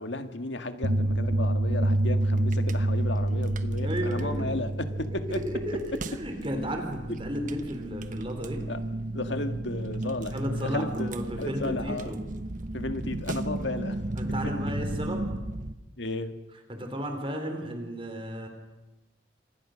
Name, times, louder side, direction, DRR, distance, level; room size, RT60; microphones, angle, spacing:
voice 1, 0.0-5.4 8.7-8.8 9.1-11.1 11.4-12.1 12.7-14.0 14.4-14.5 16.0-16.4, left 2 dB, 75° left, 8 dB, 1.9 m, -34 dB
sound 1, 0.8-5.8, right 1 dB, 90° right, 1.7 m, -27 dB
sound 2, 0.9-15.7, right 1 dB, 45° right, 1.1 m, -36 dB
voice 2, 3.8-4.6 5.1-8.6 10.3-12.2 14.2-15.4 16.7-18.5, equal, 30° right, 5 dB, 3.6 m, -34 dB
29.0 x 26.5 x 6.4 m, 1.0 s
head